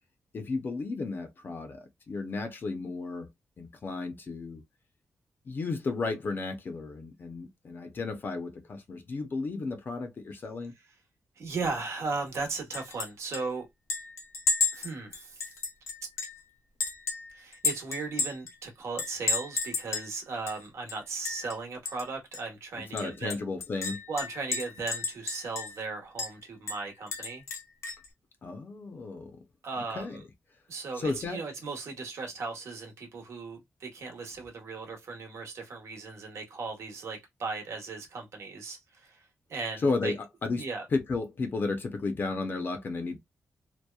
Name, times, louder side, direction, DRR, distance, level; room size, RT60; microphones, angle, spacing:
voice 1, 0.3-3.3 3.6-4.6 5.5-10.7 22.8-24.0 28.4-29.4 29.9-30.2 31.0-31.4 39.8-40.7 40.9-43.2, left 3 dB, 50° left, 0.6 m, -33 dB
voice 2, 11.4-13.7 14.7-15.4 17.3-23.4 24.1-27.4 29.6-30.2 30.7-39.2 39.5-40.1 40.6-40.8, right 4 dB, 75° right, 1.0 m, -37 dB
Chink clink, 12.7-13.1 13.3-13.4 13.9-16.4 16.8-18.5 19.0-20.1 20.5-20.6 20.9-21.5 21.8-22.0 22.3-22.4 23.0-25.8 26.2-26.3 26.7-28.1, left 3 dB, 85° left, 0.7 m, -32 dB
2.8 x 2.1 x 2.2 m
cardioid pair, 105°, 5 cm